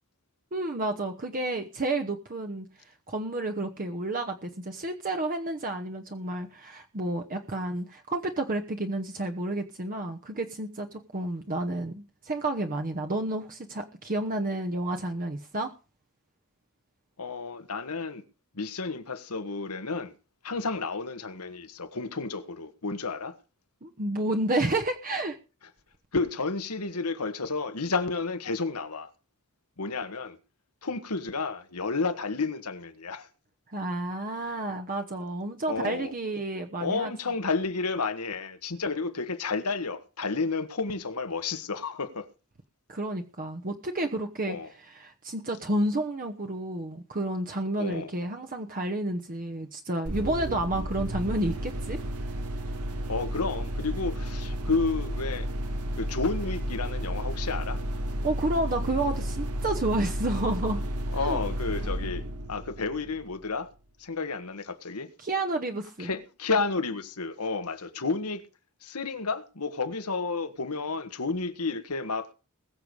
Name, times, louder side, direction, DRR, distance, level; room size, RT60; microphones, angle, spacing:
voice 1, 0.5-15.7 23.8-25.4 33.7-37.1 42.9-52.0 58.2-61.4 65.2-66.1, right 2 dB, 40° right, 1.0 m, -31 dB
voice 2, 17.2-18.2 18.5-20.1 20.4-23.4 26.1-29.1 29.8-30.4 30.8-33.3 35.7-36.1 36.8-42.3 44.5-44.7 47.8-48.1 53.1-55.5 56.0-57.8 61.1-62.2 62.5-63.7 64.0-65.1 66.0-68.4 68.8-72.3, left 4 dB, 85° left, 1.5 m, -31 dB
sound 1, 50.1-63.5, equal, 90° right, 1.9 m, -32 dB
20.5 x 7.0 x 4.8 m
head